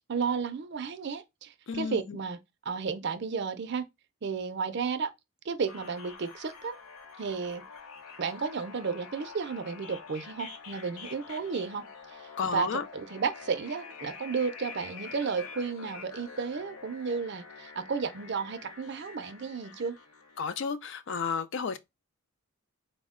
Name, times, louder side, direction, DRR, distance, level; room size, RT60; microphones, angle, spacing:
voice 1, 0.1-2.4 2.7-3.9 4.2-5.1 5.4-6.8 7.2-7.6 8.2-20.0, right 5 dB, 50° right, 0.4 m, -33 dB
voice 2, 1.7-2.0 12.4-12.8 20.4-21.8, left 5 dB, 55° left, 0.4 m, -32 dB
sound 1, 5.7-20.7, left 5 dB, 85° left, 0.7 m, -47 dB
4.2 x 2.1 x 3.6 m
head